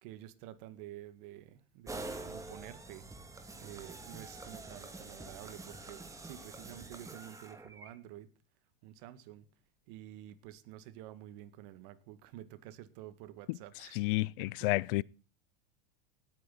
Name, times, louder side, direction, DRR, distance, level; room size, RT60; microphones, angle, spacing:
voice 1, 0.0-3.1 3.6-8.3 8.8-9.5 9.9-14.7, right 13 dB, 60° right, 1.9 m, -50 dB
sound 1, 1.9-7.9, right 2 dB, 10° right, 2.4 m, -46 dB
voice 2, 13.9-15.0, left 20 dB, 65° left, 0.6 m, -31 dB
19.0 x 9.4 x 4.0 m
supercardioid pair, 120°, 29 cm